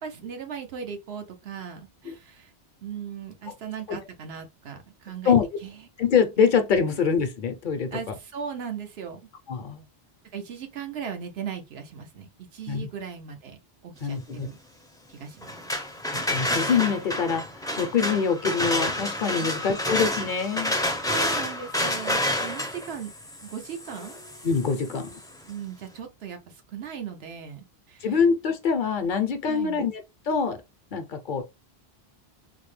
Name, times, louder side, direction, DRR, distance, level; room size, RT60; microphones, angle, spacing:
voice 1, 0.0-2.5 2.8-5.3 5.6-5.8 6.9-7.0 7.9-9.2 10.3-14.6 15.1-15.6 19.4-19.8 21.1-23.1 23.4-24.2 25.5-28.2 29.4-29.8, right 7 dB, 85° right, 1.0 m, -38 dB
voice 2, 6.0-8.0 9.5-9.8 12.7-12.9 14.0-14.5 16.3-20.8 22.4-22.5 24.4-25.2 28.0-30.0 30.3-30.6 30.9-31.4, left 6 dB, 60° left, 0.7 m, -24 dB
sound 1, 15.4-25.2, left 1 dB, 5° left, 0.4 m, -29 dB
3.8 x 2.1 x 3.1 m
omnidirectional pair, 1.0 m